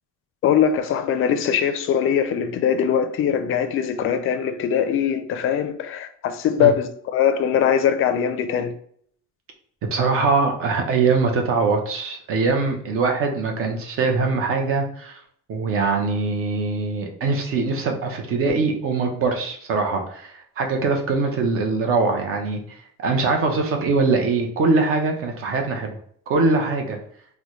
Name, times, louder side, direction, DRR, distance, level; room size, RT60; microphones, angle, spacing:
voice 1, 0.4-8.7, left 8 dB, 45° left, 0.4 m, -21 dB
voice 2, 9.9-15.2 15.5-25.9 26.3-27.0, right 4 dB, 45° right, 0.7 m, -22 dB
4.0 x 2.2 x 3.0 m
cardioid pair, 145°, 30 cm